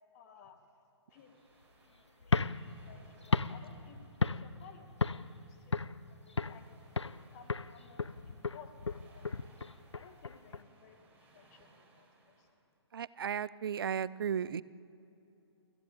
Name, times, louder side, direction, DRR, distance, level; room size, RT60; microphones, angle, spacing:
voice 1, 0.1-0.7 1.1-1.4 1.8-4.9 5.2-5.8 6.1-8.7 9.1-9.4 9.9-12.5, left 7 dB, 35° left, 4 dB, 2.2 m, -58 dB
sound 1, 1.1-12.5, right 2 dB, 10° right, 4.4 m, -65 dB
sound 2, 2.2-4.7 5.0-5.4 5.7-6.7 7.0-7.2 7.5-10.6, left 4 dB, 80° left, 0.7 m, -34 dB
voice 2, 12.9-14.6, right 7 dB, 55° right, 20 dB, 0.6 m, -35 dB
24.0 x 15.5 x 8.6 m, 2.8 s
figure-of-eight pair, 130°, 15 cm